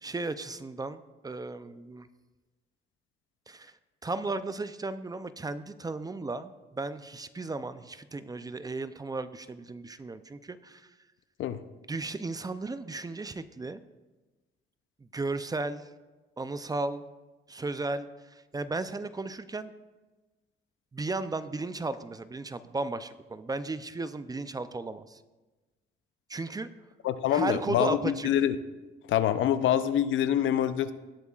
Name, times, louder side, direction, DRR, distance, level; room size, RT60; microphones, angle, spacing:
voice 1, 0.0-2.1 3.5-3.7 4.0-10.9 11.9-13.8 15.1-15.9 16.4-17.0 17.5-19.7 20.9-25.2 26.3-26.7 27.3-28.3, right 3 dB, 20° right, 13 dB, 0.5 m, -35 dB
voice 2, 27.0-28.6 29.1-30.9, left 10 dB, 75° left, 12 dB, 0.6 m, -25 dB
18.0 x 8.2 x 2.4 m, 1.2 s
cardioid pair, 90°, 20 cm